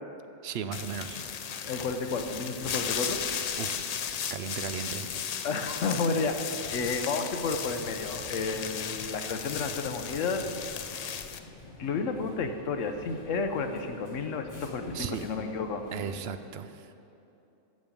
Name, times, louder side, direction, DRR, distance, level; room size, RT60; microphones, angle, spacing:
voice 1, 0.4-1.2 3.6-3.8 4.3-5.1 14.9-15.2 15.9-16.9, right 7 dB, 65° right, 10 dB, 0.8 m, -36 dB
sound 1, 0.7-11.4, left 7 dB, 65° left, 0.4 m, -35 dB
voice 2, 1.6-3.2 5.4-10.5 11.8-15.8, left 4 dB, 85° left, 7 dB, 1.2 m, -31 dB
sound 2, 7.7-16.2, left 2 dB, 15° left, 1.3 m, -47 dB
14.0 x 5.3 x 7.3 m, 2.9 s
omnidirectional pair, 1.3 m